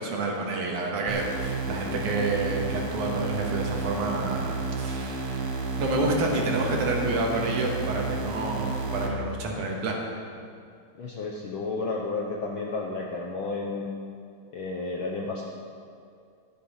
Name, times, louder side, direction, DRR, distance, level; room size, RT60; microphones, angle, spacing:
voice 1, 0.0-5.5 5.8-10.0, right 2 dB, 85° right, 0 dB, 2.9 m, -29 dB
sound 1, 1.1-9.1, right 3 dB, 60° right, 2.0 m, -31 dB
voice 2, 11.0-13.9 14.5-15.4, left 3 dB, 65° left, -2 dB, 1.2 m, -32 dB
13.0 x 8.5 x 5.7 m, 2.4 s
omnidirectional pair, 3.4 m